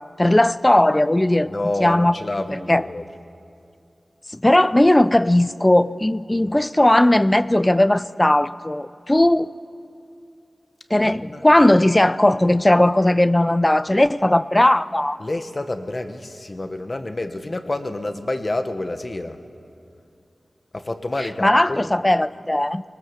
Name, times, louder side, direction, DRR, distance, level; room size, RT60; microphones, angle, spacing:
voice 1, 0.2-1.5 1.8-2.2 2.5-2.9 4.3-9.5 10.9-15.2 21.2-22.8, left 1 dB, 20° left, 16 dB, 0.5 m, -17 dB
voice 2, 1.5-3.0 11.0-11.4 15.2-19.4 20.7-21.9, left 2 dB, 45° left, 8 dB, 1.4 m, -28 dB
20.5 x 19.5 x 7.3 m, 2.5 s
cardioid pair, 45°, 0 cm